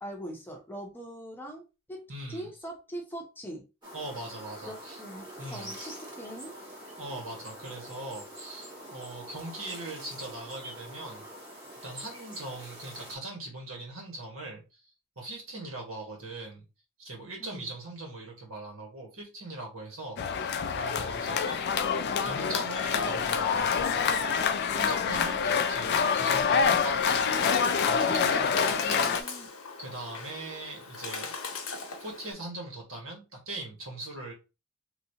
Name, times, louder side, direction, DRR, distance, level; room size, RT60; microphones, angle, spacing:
voice 1, 0.0-3.7 4.6-6.5 17.4-17.7 25.0-25.3 28.7-29.5, right 1 dB, 10° left, 0.7 m, -42 dB
voice 2, 2.1-2.5 3.9-5.0 5.4-5.7 7.0-11.3 11.8-16.6 17.0-21.6 22.2-24.0 24.7-27.3 27.8-29.1 29.8-31.4 32.0-34.3, right 2 dB, 75° right, 1.5 m, -41 dB
sound 1, 3.8-13.2, equal, 20° right, 1.2 m, -45 dB
sound 2, 20.2-29.2, left 6 dB, 50° left, 0.3 m, -26 dB
Bird, 26.7-32.3, left 5 dB, 85° left, 0.9 m, -39 dB
3.2 x 2.7 x 2.8 m
head